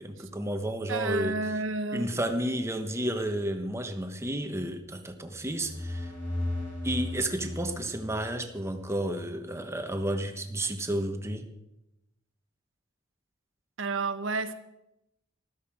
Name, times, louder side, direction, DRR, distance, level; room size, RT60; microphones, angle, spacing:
voice 1, 0.0-1.4 1.9-6.1 6.8-11.5, right 1 dB, 15° right, 6 dB, 1.2 m, -31 dB
voice 2, 0.9-2.1 13.8-14.5, right 3 dB, 90° right, 10 dB, 1.1 m, -31 dB
sound 1, 5.3-9.0, left 1 dB, 65° left, 3.4 m, -36 dB
13.5 x 12.5 x 5.0 m, 0.89 s
head